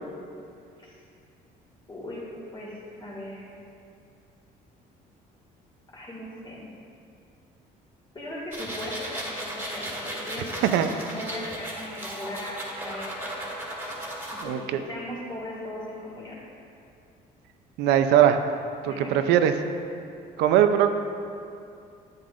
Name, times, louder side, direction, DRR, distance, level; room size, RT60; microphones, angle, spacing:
voice 1, 1.9-2.3 2.5-2.7 3.0-3.4 5.9-6.7 8.1-13.2 14.4-16.4 18.9-19.2, left 1 dB, 25° left, -7 dB, 2.2 m, -38 dB
sound 1, 8.5-14.4, right 1 dB, 10° right, 2.0 m, -36 dB
voice 2, 14.4-14.8 17.8-18.4 18.8-19.5 20.4-20.9, right 10 dB, 90° right, 8 dB, 0.6 m, -20 dB
10.5 x 9.2 x 2.6 m, 2.5 s
cardioid pair, 110°, 17 cm